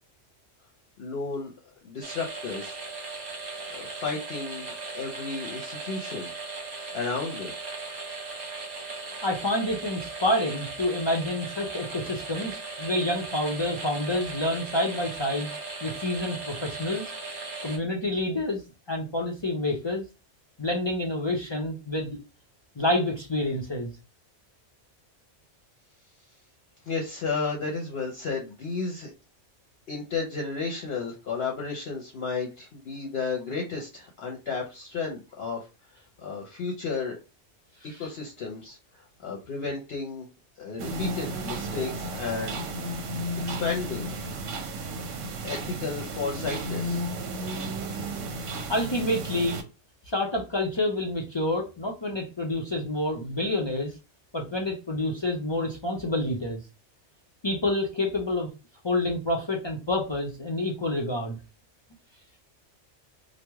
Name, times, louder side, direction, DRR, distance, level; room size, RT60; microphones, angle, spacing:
voice 1, 1.0-1.5 1.8-2.8 3.7-6.3 6.9-7.5 26.9-29.1 29.9-35.7 36.2-37.2 37.8-40.3 40.6-42.6 43.4-44.1 45.4-47.0, left 4 dB, 60° left, 0 dB, 0.9 m, -33 dB
sound 1, 2.0-17.8, right 3 dB, 60° right, 1.3 m, -38 dB
voice 2, 9.2-15.5 15.8-17.1 17.6-18.6 18.9-20.0 20.6-22.2 22.8-23.9 37.9-38.0 48.7-49.6 50.1-53.9 54.3-56.6 57.4-58.5 58.8-61.4, left 1 dB, 40° left, -1 dB, 0.4 m, -28 dB
sound 2, 40.8-49.6, right 1 dB, 80° right, 1.0 m, -33 dB
3.0 x 2.2 x 3.4 m, 0.30 s
omnidirectional pair, 1.3 m